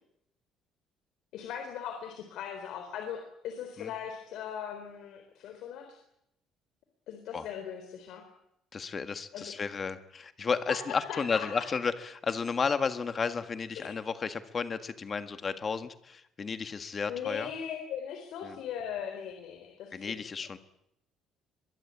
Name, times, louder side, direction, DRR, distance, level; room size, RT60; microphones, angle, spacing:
voice 1, 1.3-6.0 7.1-8.2 9.3-9.5 10.7-11.5 13.7-14.0 17.1-20.2, left 8 dB, 70° left, 5 dB, 3.9 m, -39 dB
voice 2, 8.7-17.5 18.4-18.6 19.9-20.6, left 5 dB, 30° left, 10 dB, 1.7 m, -33 dB
23.0 x 22.5 x 8.5 m, 0.79 s
cardioid pair, 145°, 0 cm